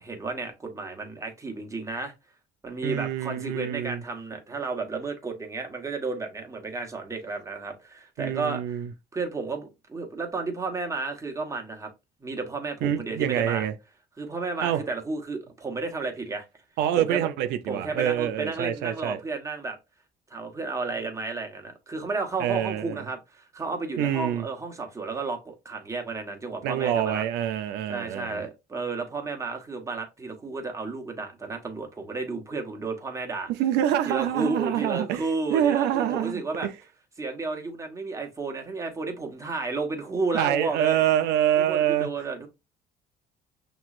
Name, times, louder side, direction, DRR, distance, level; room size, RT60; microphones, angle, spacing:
voice 1, 0.0-2.1 2.6-8.6 9.1-11.9 12.2-13.7 14.2-16.4 17.0-17.3 17.7-19.8 20.3-27.2 27.9-33.5 34.0-36.7 37.2-41.0 41.6-42.5, right 3 dB, 20° right, 1.2 m, -32 dB
voice 2, 2.8-4.0 8.2-8.9 12.8-13.7 14.6-14.8 16.8-19.2 22.4-23.0 24.0-24.5 26.6-28.4 33.5-36.7 40.3-42.1, right 11 dB, 85° right, 0.5 m, -26 dB
5.9 x 3.1 x 2.4 m
cardioid pair, 110°, 17 cm